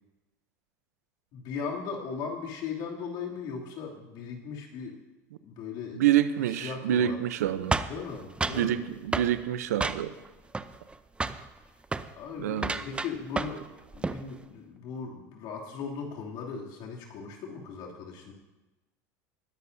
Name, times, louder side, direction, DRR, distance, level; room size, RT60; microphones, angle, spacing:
voice 1, 1.3-5.0 5.4-6.0 6.5-7.2 7.9-8.8 12.2-13.6 13.9-18.3, left 5 dB, 60° left, 2.7 m, -38 dB
voice 2, 5.9-7.8 8.5-10.1 12.4-12.7, right 11 dB, 85° right, 0.7 m, -27 dB
sound 1, 7.7-8.7 9.1-9.3 9.8-10.3 10.5-11.0 11.2-11.5 11.8-12.1 12.6-13.7 13.9-14.2, right 3 dB, 15° right, 0.6 m, -30 dB
20.5 x 10.5 x 2.7 m
hypercardioid pair, 95°, 8 cm